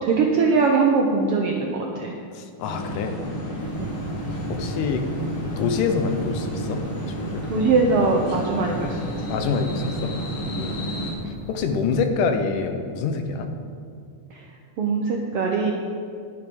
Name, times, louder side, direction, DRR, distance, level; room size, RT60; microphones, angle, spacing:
voice 1, 0.0-2.1 3.8-4.0 7.5-9.3 10.5-10.8 14.3-14.5 14.8-15.7, right 4 dB, 70° right, 0 dB, 1.4 m, -22 dB
voice 2, 2.4-3.2 4.5-5.0 5.6-7.4 9.3-10.1 10.6-10.7 11.5-13.5, left 5 dB, 80° left, 6 dB, 2.4 m, -26 dB
sound 1, 2.6-11.1, equal, 50° left, 2.5 m, -31 dB
sound 2, 3.6-12.1, right 1 dB, 90° right, 2.6 m, -39 dB
10.5 x 9.7 x 5.3 m, 2.3 s
omnidirectional pair, 3.6 m